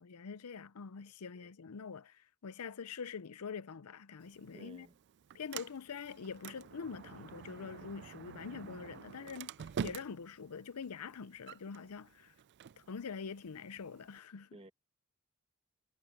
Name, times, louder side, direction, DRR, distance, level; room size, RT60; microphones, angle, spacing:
voice 1, 0.0-4.9 5.3-12.3 12.8-14.6, left 5 dB, 85° left, 0.6 m, -45 dB
Sliding door, 4.2-14.2, right 7 dB, 50° right, 0.4 m, -48 dB
voice 2, 4.5-4.9 14.5-14.7, right 1 dB, 25° right, 1.4 m, -54 dB
head